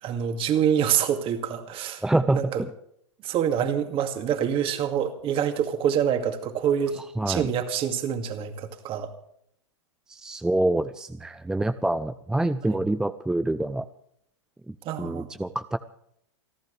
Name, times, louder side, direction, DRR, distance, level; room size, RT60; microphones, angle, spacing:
voice 1, 0.0-2.6 3.2-7.0 7.3-9.1 12.7-12.8 14.8-15.3, right 9 dB, 35° right, 6 dB, 2.3 m, -26 dB
voice 2, 2.0-2.7 7.2-7.5 10.1-13.9 14.7-15.8, right 1 dB, 5° right, 12 dB, 0.5 m, -26 dB
29.0 x 12.0 x 3.3 m, 0.71 s
hypercardioid pair, 110°, 15 cm